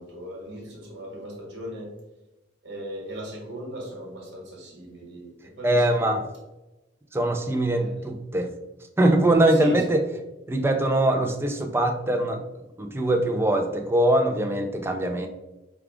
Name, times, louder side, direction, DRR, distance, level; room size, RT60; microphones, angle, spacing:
voice 1, 0.0-1.9 2.6-6.1 7.6-8.1 9.5-10.0, equal, 70° right, -1 dB, 1.3 m, -39 dB
voice 2, 5.6-6.2 7.1-8.5 9.0-10.0 10.5-12.4 12.8-15.3, right 1 dB, 15° right, 3 dB, 0.4 m, -22 dB
4.8 x 2.4 x 3.5 m, 1.0 s
head